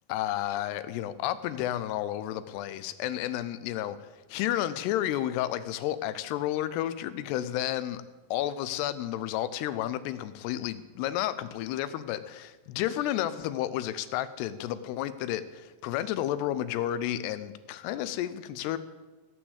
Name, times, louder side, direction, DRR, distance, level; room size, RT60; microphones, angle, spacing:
voice 1, 0.1-8.0 8.3-18.8, left 12 dB, 85° left, 2.8 m, -31 dB
16.0 x 6.1 x 8.0 m
omnidirectional pair, 4.7 m